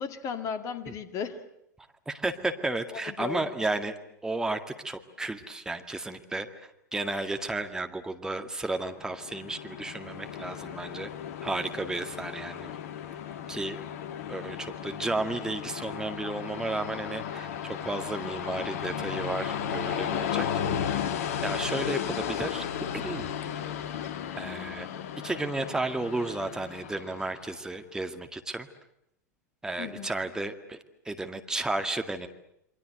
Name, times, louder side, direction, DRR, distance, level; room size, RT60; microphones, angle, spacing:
voice 1, 0.0-1.4 2.9-3.4 29.8-30.1, left 6 dB, 35° left, 10 dB, 2.3 m, -35 dB
voice 2, 2.1-4.0 4.2-4.6 4.8-11.1 11.4-12.7 13.1-13.2 13.5-13.8 14.3-20.5 20.8-20.9 21.4-22.6 22.9-23.3 24.3-24.9 25.2-28.7 29.6-30.8 31.1-32.3, right 2 dB, 5° right, 7 dB, 2.0 m, -33 dB
Train, 9.0-27.6, left 8 dB, 55° left, 1.6 m, -35 dB
29.0 x 24.5 x 8.0 m, 0.78 s
figure-of-eight pair, 90°, 9 cm